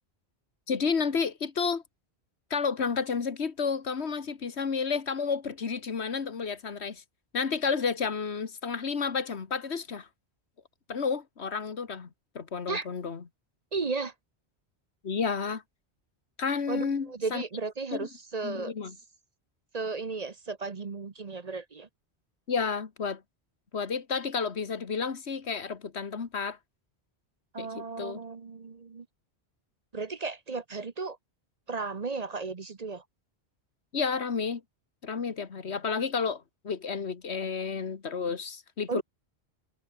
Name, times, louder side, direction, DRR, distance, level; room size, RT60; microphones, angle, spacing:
voice 1, 0.7-1.8 2.5-7.0 7.3-10.1 10.9-12.1 12.4-13.2 15.0-15.6 16.4-17.4 17.9-18.1 18.4-19.0 22.5-23.2 23.7-26.6 27.6-28.2 33.9-34.6 35.0-39.0, left 5 dB, 80° left, 1.8 m, -31 dB
voice 2, 13.7-14.1 16.7-18.7 19.7-21.9 27.5-29.1 29.9-31.2 31.7-33.0 38.9-39.0, right 4 dB, 40° right, 0.9 m, -34 dB
omnidirectional pair, 1.1 m